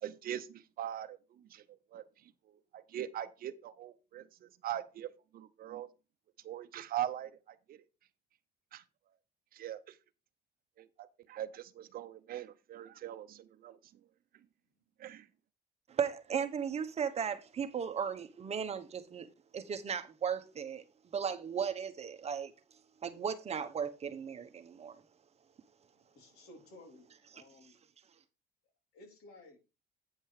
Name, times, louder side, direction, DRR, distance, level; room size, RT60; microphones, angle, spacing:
voice 1, 0.0-5.9 6.4-7.8 8.7-8.8 9.5-10.0 10.8-13.8 15.0-15.3, right 11 dB, 60° right, 0.8 m, -42 dB
voice 2, 15.9-19.3 19.5-20.8 21.1-22.5 23.0-25.0, right 7 dB, 40° right, 1.1 m, -36 dB
voice 3, 25.9-27.8 28.9-29.6, left 1 dB, 75° left, 3.8 m, -56 dB
9.2 x 5.3 x 4.9 m
cardioid pair, 110°, 17 cm